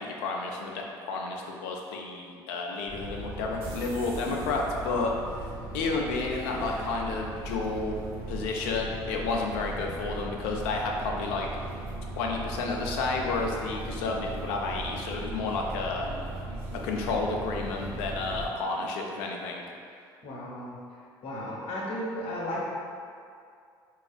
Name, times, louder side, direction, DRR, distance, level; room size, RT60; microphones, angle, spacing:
voice 1, 0.0-5.1 5.4-8.0 8.3-11.5 12.2-16.1 16.8-19.7, left 3 dB, 75° left, 0 dB, 0.4 m, -31 dB
sound 1, 2.9-18.5, right 2 dB, 55° right, 0.8 m, -38 dB
voice 2, 20.2-20.8 21.2-22.6, left 1 dB, 55° left, -4 dB, 0.8 m, -34 dB
4.1 x 2.4 x 2.3 m, 2.3 s
hypercardioid pair, 60°, 12 cm